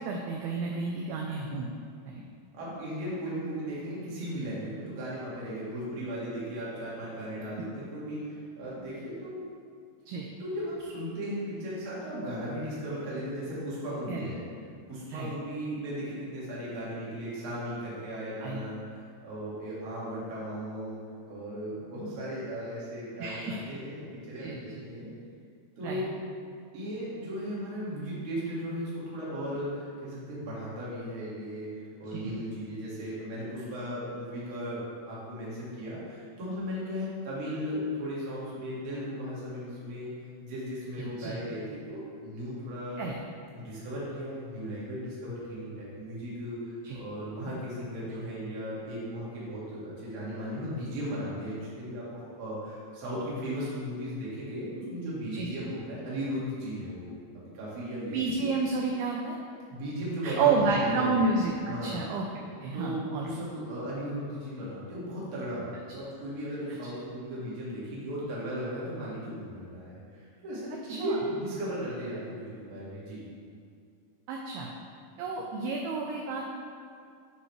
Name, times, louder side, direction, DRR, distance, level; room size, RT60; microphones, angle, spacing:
voice 1, 0.0-1.7 2.1-2.2 10.1-10.3 14.1-14.3 15.1-15.3 18.4-18.6 23.2-23.6 24.4-24.6 25.8-26.0 32.1-32.3 41.0-41.4 43.0-43.1 46.8-47.0 55.3-55.7 58.1-59.4 60.2-63.3 70.9-71.2 74.3-74.7 75.2-76.5, right 4 dB, 85° right, 0 dB, 2.2 m, -30 dB
voice 2, 2.5-9.5 10.4-14.4 14.9-25.1 25.8-26.1 26.7-31.7 32.0-40.1 40.4-43.0 43.5-58.5 59.7-61.2 61.6-62.0 62.7-73.2, equal, 45° right, -8 dB, 1.9 m, -36 dB
9.9 x 5.4 x 3.2 m, 2.3 s
omnidirectional pair, 5.0 m